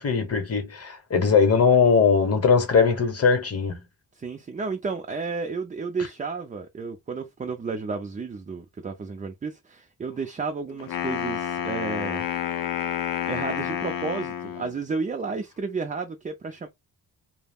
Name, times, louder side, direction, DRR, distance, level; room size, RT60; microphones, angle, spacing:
voice 1, 0.0-3.8, left 5 dB, 35° left, 0.8 m, -20 dB
voice 2, 4.2-12.3 13.3-16.7, right 4 dB, 20° right, 0.3 m, -32 dB
Wind instrument woodwind instrument, 10.8-14.8, left 9 dB, 55° left, 0.5 m, -29 dB
2.3 x 2.0 x 3.4 m
cardioid pair, 100°, 42 cm